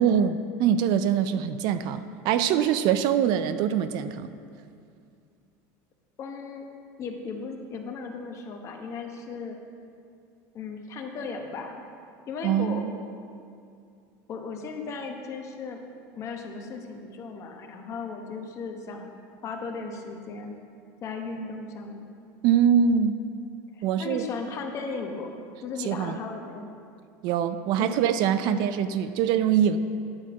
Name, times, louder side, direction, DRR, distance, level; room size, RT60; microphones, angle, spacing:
voice 1, 0.0-4.3 12.4-12.9 22.4-23.2 23.8-24.3 25.8-26.2 27.2-29.8, right 8 dB, 55° right, 11 dB, 0.4 m, -23 dB
voice 2, 6.2-6.7 7.0-9.6 10.5-11.8 12.3-12.9 14.3-15.8 16.1-19.1 19.4-20.6 21.0-22.1 23.7-25.3 25.6-26.7 27.8-27.9 28.5-28.6, left 4 dB, 35° left, 3 dB, 0.9 m, -36 dB
10.5 x 4.5 x 5.9 m, 2.4 s
supercardioid pair, 145°, 9 cm